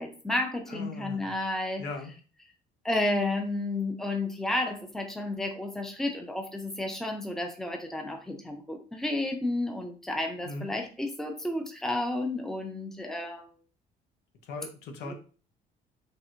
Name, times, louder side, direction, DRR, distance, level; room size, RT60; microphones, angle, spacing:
voice 1, 0.0-1.8 2.8-13.5 15.0-15.1, left 2 dB, 5° left, 3 dB, 0.5 m, -31 dB
voice 2, 0.7-1.3 1.8-2.1 10.4-10.7 14.4-15.1, left 3 dB, 80° left, 3 dB, 0.7 m, -39 dB
3.2 x 2.6 x 2.5 m, 0.37 s
cardioid pair, 110°, 17 cm